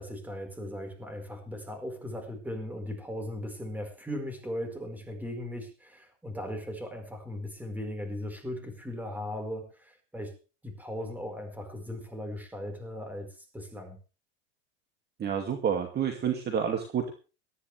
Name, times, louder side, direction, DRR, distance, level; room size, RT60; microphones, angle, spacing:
voice 1, 0.0-10.4 10.6-14.0, left 1 dB, 5° right, 5 dB, 4.8 m, -38 dB
voice 2, 15.2-17.1, right 8 dB, 30° right, 5 dB, 2.4 m, -29 dB
19.0 x 14.0 x 3.4 m, 0.33 s
supercardioid pair, 130°, 34 cm